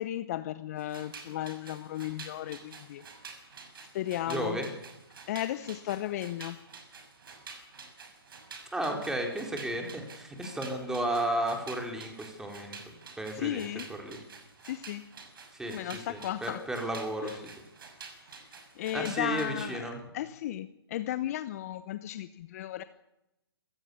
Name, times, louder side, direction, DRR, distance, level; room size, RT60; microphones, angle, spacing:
voice 1, 0.0-3.0 3.8-4.6 5.3-6.6 13.3-13.9 14.6-15.0 15.7-16.6 17.2-17.4 18.3-18.5 18.7-22.8, left 13 dB, 40° left, 13 dB, 0.9 m, -35 dB
sound 1, 0.8-19.7, right 5 dB, 60° right, 6.6 m, -49 dB
voice 2, 4.3-4.7 8.7-12.8 13.2-13.7 14.0-14.2 15.5-15.8 16.1-17.3 18.9-20.0, right 1 dB, 5° right, 2 dB, 4.1 m, -33 dB
26.5 x 16.5 x 7.0 m, 0.90 s
hypercardioid pair, 140°, 13 cm